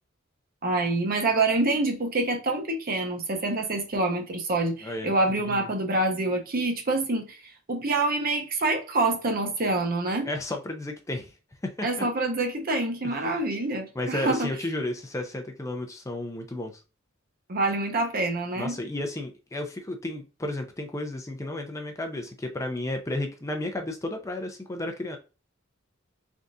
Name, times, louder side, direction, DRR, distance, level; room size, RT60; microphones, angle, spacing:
voice 1, 0.6-10.3 11.8-14.5 17.5-18.8, right 2 dB, 50° right, 0.8 m, -26 dB
voice 2, 4.8-5.1 5.4-5.7 10.2-11.3 11.6-12.1 13.2-13.4 13.9-16.8 18.6-25.2, left 1 dB, 15° left, 0.5 m, -33 dB
3.8 x 3.5 x 2.6 m
head